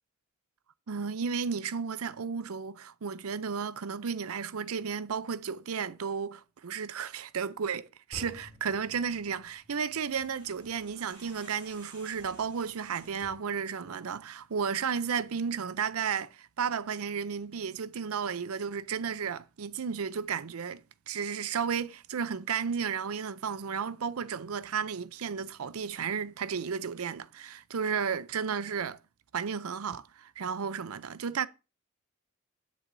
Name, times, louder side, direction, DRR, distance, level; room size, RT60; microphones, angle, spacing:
voice 1, 0.9-29.0 29.3-31.5, right 6 dB, 85° right, 0.6 m, -33 dB
sound 1, 8.1-11.5, left 1 dB, 20° left, 3.1 m, -51 dB
sound 2, 9.9-13.5, right 1 dB, 25° right, 6.7 m, -55 dB
17.5 x 6.3 x 2.7 m
head